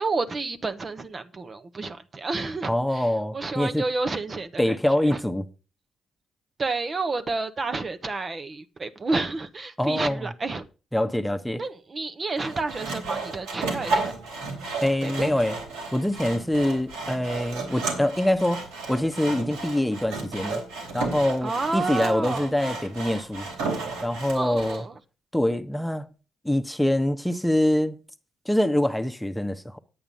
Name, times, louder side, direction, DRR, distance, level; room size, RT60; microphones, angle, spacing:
voice 1, 0.0-2.7 3.3-4.6 5.1-5.2 6.6-10.6 11.6-14.0 15.0-15.3 21.4-22.5 24.3-24.9, right 3 dB, 40° right, 1.2 m, -30 dB
voice 2, 2.6-3.9 4.6-5.5 9.8-10.3 10.9-11.6 14.8-15.6 15.9-18.6 18.9-20.6 20.9-23.5 24.0-24.9 25.3-26.1 26.4-28.0 28.4-29.8, left 1 dB, 5° left, 1.2 m, -24 dB
Sawing, 12.4-24.8, right 3 dB, 80° right, 3.4 m, -33 dB
9.6 x 8.7 x 5.4 m
hypercardioid pair, 45°, 0 cm